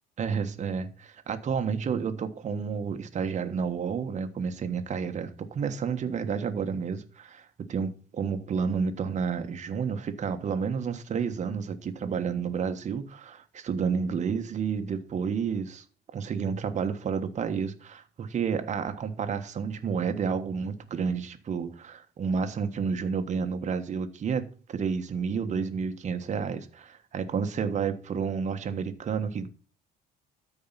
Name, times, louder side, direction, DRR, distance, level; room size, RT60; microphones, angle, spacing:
voice 1, 0.2-15.8 16.1-29.5, right 6 dB, 45° right, 1.4 m, -30 dB
13.0 x 4.8 x 5.8 m
cardioid pair, 110°, 17 cm